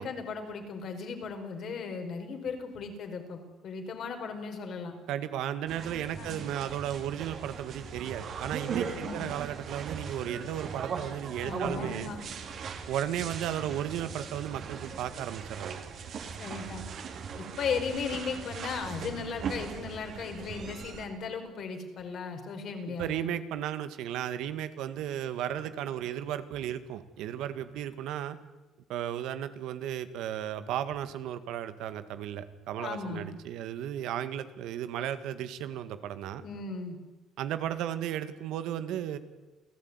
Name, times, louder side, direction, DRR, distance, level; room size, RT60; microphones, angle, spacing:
voice 1, 0.0-5.0 6.2-6.4 8.9-9.3 11.4-12.2 16.4-16.8 17.4-23.3 32.8-33.3 36.4-37.0, left 5 dB, 55° left, 5 dB, 4.8 m, -36 dB
voice 2, 5.1-12.1 12.9-15.8 22.9-28.4 28.9-36.4 37.4-39.2, right 10 dB, 80° right, 11 dB, 1.9 m, -35 dB
sound 1, 5.7-21.1, right 6 dB, 55° right, 3.5 m, -39 dB
28.5 x 16.0 x 9.8 m, 1.2 s
cardioid pair, 130°, 0 cm